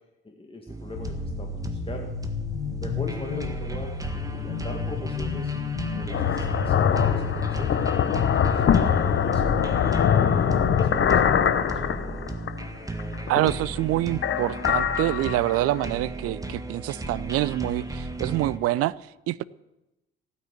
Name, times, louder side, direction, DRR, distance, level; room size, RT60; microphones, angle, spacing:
voice 1, 0.2-2.1 2.4-5.5 6.0-10.3 10.7-11.8, left 2 dB, 20° left, 1 dB, 2.2 m, -40 dB
sound 1, 0.7-18.6, right 1 dB, 10° right, 1.8 m, -35 dB
sound 2, 1.0-11.1, left 6 dB, 80° left, 1.3 m, -34 dB
sound 3, 5.8-12.6 13.0-13.8 14.1-15.9, left 8 dB, 45° left, 1.0 m, -23 dB
voice 2, 13.3-18.9 19.3-19.4, right 16 dB, 55° right, 20 dB, 0.5 m, -26 dB
15.5 x 9.8 x 6.6 m, 0.97 s
figure-of-eight pair, 45°, 29 cm